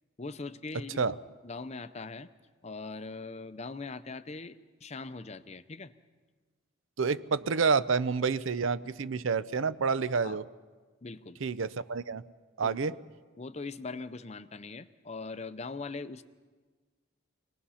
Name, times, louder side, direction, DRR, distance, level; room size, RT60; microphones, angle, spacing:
voice 1, 0.2-1.1 1.4-2.3 2.6-5.9 10.2-10.4 11.0-11.4 12.6-13.0 13.4-16.2, left 3 dB, 30° left, 12 dB, 0.6 m, -41 dB
voice 2, 7.0-10.4 11.4-12.2 12.6-12.9, right 5 dB, 65° right, 15 dB, 0.6 m, -28 dB
25.5 x 19.0 x 5.7 m, 1.4 s
head